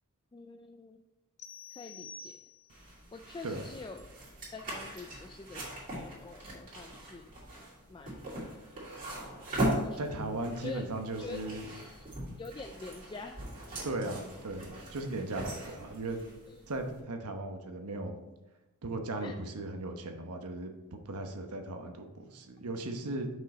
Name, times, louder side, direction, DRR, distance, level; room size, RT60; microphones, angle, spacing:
voice 1, 0.3-1.0 1.7-2.4 3.1-4.0 4.5-5.6 5.9-7.3 7.9-8.3 9.8-10.8 11.2-11.4 11.7-12.1 12.4-13.4 16.5-16.6 19.2-19.3, left 3 dB, 20° left, 4 dB, 0.3 m, -46 dB
sound 1, 1.4-2.9, left 4 dB, 50° left, 0.9 m, -48 dB
sound 2, 2.7-17.0, right 1 dB, 40° right, 2.5 m, -40 dB
voice 2, 10.0-11.7 13.8-16.2 16.7-18.1 18.8-23.3, right 2 dB, 85° right, 5 dB, 1.0 m, -37 dB
6.3 x 5.5 x 4.3 m, 1.0 s
head